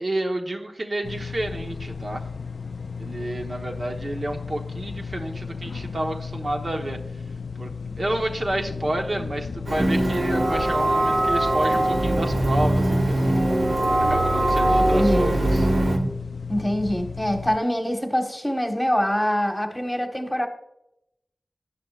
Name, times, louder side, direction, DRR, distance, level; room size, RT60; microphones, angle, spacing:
voice 1, 0.0-2.2 3.0-7.0 7.5-7.7 8.0-13.3 14.0-15.7, right 1 dB, 60° right, 1.2 m, -30 dB
sound 1, 1.0-17.6, left 5 dB, 80° left, 0.4 m, -34 dB
Printer, 9.7-16.0, right 1 dB, 80° right, 1.4 m, -27 dB
sound 2, 9.8-16.1, right 1 dB, 20° right, 0.4 m, -23 dB
voice 2, 14.6-15.3 16.5-20.5, equal, 10° left, 1.4 m, -24 dB
11.5 x 10.5 x 2.5 m
cardioid pair, 45°, 0 cm